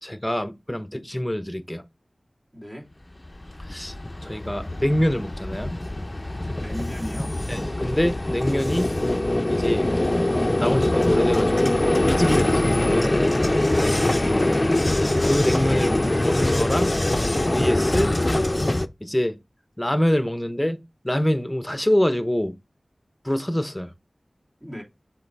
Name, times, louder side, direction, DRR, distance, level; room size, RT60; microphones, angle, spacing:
voice 1, 0.0-1.8 3.7-3.9 4.2-5.8 7.5-8.9 9.5-9.9 10.6-11.8 12.1-13.3 15.0-17.0 17.5-18.2 19.0-19.4 19.8-22.5 23.2-23.9, equal, 15° left, 0.9 m, -25 dB
voice 2, 2.5-2.9 6.6-7.4 14.2-14.5 24.6-24.8, equal, 25° right, 2.8 m, -36 dB
Vehicle, 3.2-18.9, left 1 dB, 30° left, 0.5 m, -23 dB
6.8 x 4.0 x 3.4 m
wide cardioid pair, 45°, 0 cm